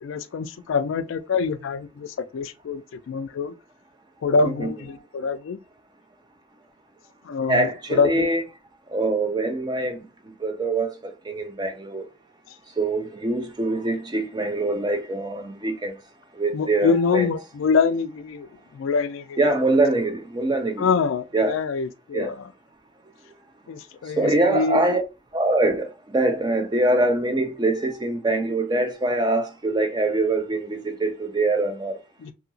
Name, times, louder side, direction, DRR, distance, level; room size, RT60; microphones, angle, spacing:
voice 1, 0.0-3.6 4.2-5.6 7.2-8.3 16.5-19.4 20.8-22.5 23.7-24.8 32.2-32.3, left 5 dB, 65° left, 0.3 m, -25 dB
voice 2, 7.5-8.4 8.9-10.0 10.4-12.1 12.8-16.0 16.4-17.3 19.4-20.9 21.3-21.6 22.1-22.3 24.2-25.0 25.3-32.0, right 2 dB, 20° right, 0.4 m, -23 dB
2.8 x 2.7 x 2.6 m
head